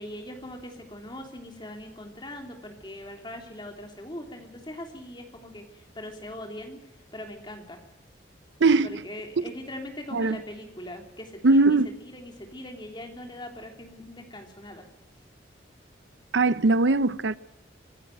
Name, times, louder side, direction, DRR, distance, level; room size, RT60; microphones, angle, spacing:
voice 1, 0.0-6.8 7.1-7.8 8.8-14.9, left 1 dB, 25° left, 3.2 m, -41 dB
voice 2, 8.6-9.0 10.1-10.4 11.4-11.9 16.3-17.4, right 3 dB, 85° right, 0.7 m, -20 dB
24.5 x 12.0 x 9.2 m
head